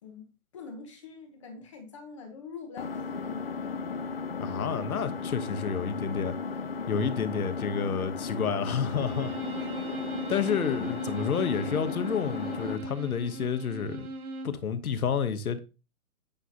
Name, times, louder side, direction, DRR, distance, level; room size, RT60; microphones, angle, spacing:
voice 1, 0.0-4.0 10.7-10.9, left 5 dB, 20° left, 1.1 m, -45 dB
Engine, 2.8-12.8, left 4 dB, 45° left, 0.5 m, -35 dB
voice 2, 4.4-6.3 6.9-9.3 10.3-14.1 14.4-15.6, left 6 dB, 70° left, 1.3 m, -30 dB
Bowed string instrument, 8.8-14.6, right 2 dB, 75° right, 1.6 m, -39 dB
9.2 x 3.4 x 5.8 m
hypercardioid pair, 175°, 44 cm